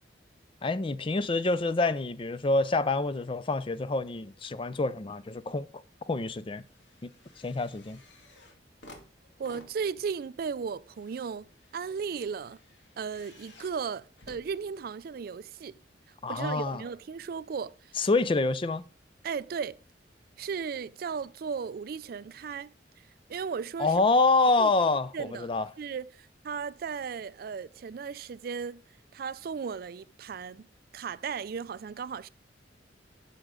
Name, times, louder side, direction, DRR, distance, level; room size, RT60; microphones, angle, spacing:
voice 1, 0.6-5.7 6.1-6.6 7.4-8.0 16.2-16.8 18.0-18.8 23.8-25.7, left 3 dB, 30° left, 0.4 m, -27 dB
sound 1, 4.8-5.5 5.8-15.2 16.0-16.1, left 1 dB, 90° left, 2.3 m, -56 dB
voice 2, 9.4-11.5 11.7-12.6 13.0-15.8 16.3-18.0 19.2-19.8 20.4-24.0 24.6-24.7 25.1-25.5 25.8-28.8 29.1-30.7 30.9-32.3, right 6 dB, 55° right, 0.4 m, -36 dB
9.7 x 6.5 x 3.7 m
head